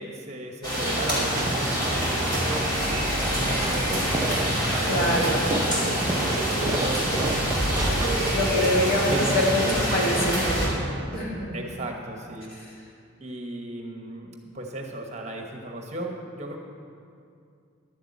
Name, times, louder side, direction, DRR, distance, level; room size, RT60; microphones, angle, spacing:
voice 1, 0.0-8.4 9.1-10.1 11.5-12.5 13.2-14.3 14.5-16.6, right 1 dB, 30° right, 2 dB, 1.1 m, -36 dB
sound 1, 0.6-10.7, equal, 20° left, 4.0 m, -25 dB
Fireworks, 1.3-8.7, right 2 dB, 15° right, 0.5 m, -33 dB
sound 2, 2.7-8.5, left 1 dB, 60° left, 1.5 m, -38 dB
voice 2, 4.9-5.4 8.3-11.5, left 1 dB, 45° left, -4 dB, 2.4 m, -25 dB
11.0 x 8.2 x 8.4 m, 2.4 s
head